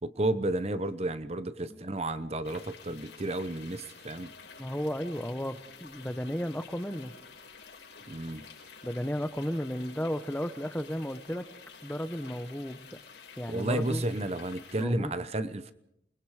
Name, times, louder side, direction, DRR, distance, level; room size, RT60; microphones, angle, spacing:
voice 1, 0.0-4.3 8.1-8.4 13.5-15.7, right 1 dB, 35° right, 12 dB, 0.9 m, -32 dB
sound 1, 2.4-14.8, left 5 dB, 85° left, 5.7 m, -50 dB
voice 2, 4.6-5.5 5.8-7.1 8.8-11.4 11.8-13.0 13.4-14.0 14.8-15.1, equal, 10° left, 11 dB, 0.8 m, -34 dB
28.5 x 21.0 x 4.9 m, 0.77 s
head